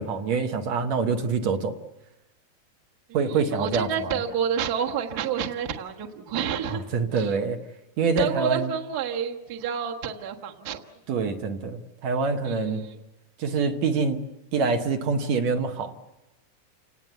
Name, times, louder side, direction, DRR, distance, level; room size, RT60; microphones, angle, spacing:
voice 1, 0.0-1.8 3.1-4.2 6.7-7.6 8.0-8.7 11.1-12.9 13.4-14.2 14.5-15.9, right 4 dB, 65° right, 5 dB, 2.4 m, -25 dB
voice 2, 3.3-6.8 7.2-7.3 8.2-10.8 12.5-12.8, right 7 dB, 40° right, 2 dB, 1.5 m, -29 dB
30.0 x 18.5 x 8.1 m, 1.0 s
omnidirectional pair, 3.5 m